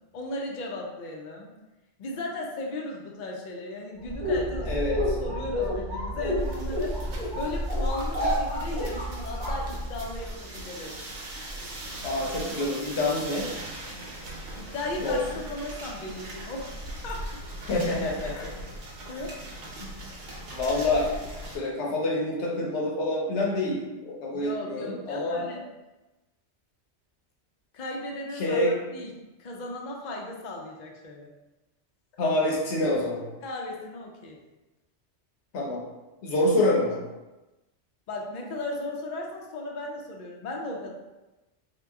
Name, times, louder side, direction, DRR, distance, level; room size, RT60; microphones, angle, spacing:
voice 1, 0.1-1.5 2.0-4.7 5.2-7.1 7.3-10.9 14.5-17.4 18.3-18.5 19.1-19.4 24.3-25.6 27.7-29.1 29.4-31.3 33.4-34.4 38.1-40.9, left 2 dB, 55° left, -1 dB, 0.5 m, -36 dB
wipe glass window - clean, 4.0-10.3, equal, 5° left, 0.8 m, -29 dB
voice 2, 4.6-5.2 12.0-13.5 15.0-15.2 17.6-18.5 19.8-20.0 20.5-21.1 21.5-25.5 28.4-28.7 32.2-33.2 35.5-35.8 36.2-37.0, left 2 dB, 75° left, -2 dB, 1.0 m, -27 dB
sound 1, 6.4-21.6, right 1 dB, 85° right, 1.0 m, -40 dB
2.8 x 2.2 x 3.4 m, 1.1 s
omnidirectional pair, 1.2 m